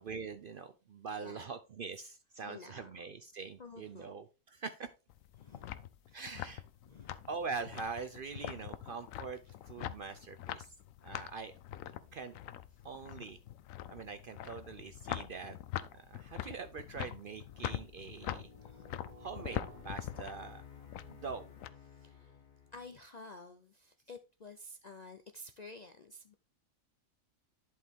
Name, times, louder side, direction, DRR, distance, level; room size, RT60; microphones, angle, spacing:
voice 1, 0.0-4.9 6.1-6.6 7.3-10.7 11.0-11.5 12.1-12.4 12.8-13.4 13.9-15.6 15.9-18.5 19.2-20.6 21.1-21.5, right 5 dB, 60° right, 0.6 m, -43 dB
voice 2, 2.4-2.9 3.6-4.1 5.4-6.2 6.9-7.3 8.5-8.6 10.0-10.3 11.9-12.2 18.6-19.2 21.9-22.3 22.7-26.3, left 2 dB, 50° left, 0.5 m, -52 dB
sound 1, 5.1-21.7, left 12 dB, 80° left, 1.0 m, -44 dB
sound 2, 16.6-23.1, left 4 dB, 35° left, 1.3 m, -55 dB
11.0 x 4.7 x 3.5 m
omnidirectional pair, 1.4 m